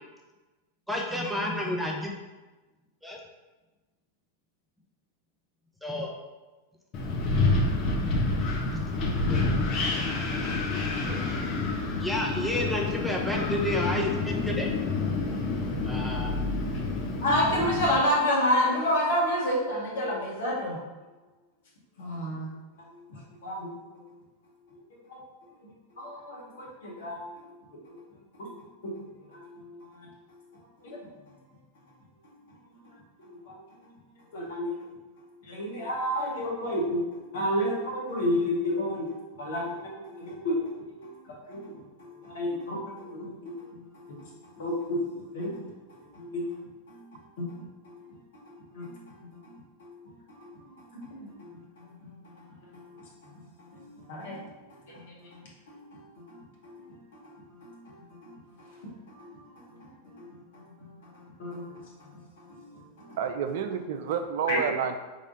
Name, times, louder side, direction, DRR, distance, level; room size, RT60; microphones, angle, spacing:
voice 1, 0.9-2.1 3.0-3.2 5.8-6.1 8.7-8.9 9.3-9.4 12.0-14.7 15.8-16.3, left 1 dB, ahead, -1 dB, 0.7 m, -30 dB
Wind, 6.9-17.9, left 3 dB, 35° left, 0.8 m, -28 dB
voice 2, 17.2-20.8 22.0-22.5 22.9-23.7 25.1-25.2 26.0-28.0 28.4-29.0 29.3-30.1 30.8-31.1 33.2-33.6 34.3-34.8 35.4-44.2 44.6-45.7 46.1-46.6 46.9-48.1 48.4-49.1 49.4-51.6 52.7-53.0 53.7-54.5 55.0-56.0 56.3-56.9 57.3-57.9 58.2-58.9 59.2-59.8 60.0-60.3 61.1-61.8 62.5-63.2 64.5-64.6, equal, 60° left, -4 dB, 1.4 m, -31 dB
voice 3, 63.2-65.0, right 7 dB, 55° right, 7 dB, 0.3 m, -29 dB
4.1 x 3.2 x 3.8 m, 1.2 s
figure-of-eight pair, 90°, 0 cm